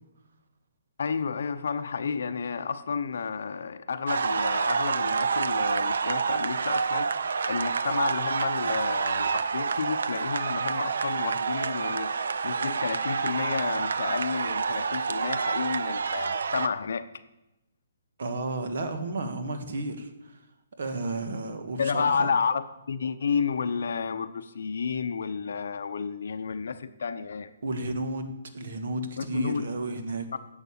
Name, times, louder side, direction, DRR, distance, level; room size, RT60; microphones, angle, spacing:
voice 1, 1.0-7.1 7.5-12.1 12.4-17.1 21.8-27.5 29.2-29.7 30.3-30.4, left 6 dB, 65° left, 12 dB, 0.8 m, -31 dB
sound 1, 4.1-16.7, right 5 dB, 70° right, 0.7 m, -28 dB
voice 2, 18.2-20.4 20.8-22.3 27.6-30.3, right 2 dB, 55° right, 8 dB, 1.7 m, -32 dB
11.0 x 8.0 x 8.7 m, 0.96 s
hypercardioid pair, 175°, 0 cm